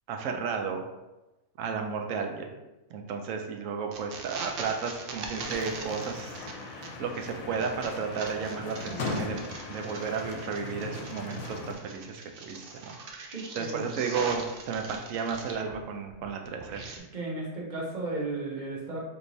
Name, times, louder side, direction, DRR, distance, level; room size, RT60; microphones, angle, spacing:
voice 1, 0.1-0.8 1.6-2.5 2.9-9.4 9.7-16.8, right 5 dB, 75° right, 4 dB, 1.0 m, -33 dB
sound 1, 3.9-15.8 16.1-17.0, right 4 dB, 60° right, 0.6 m, -41 dB
sound 2, 5.4-11.7, left 3 dB, 85° left, 1.0 m, -38 dB
voice 2, 13.3-13.9 17.1-19.1, right 2 dB, 40° right, -4 dB, 0.9 m, -34 dB
4.5 x 2.9 x 2.6 m, 1.0 s
omnidirectional pair, 1.4 m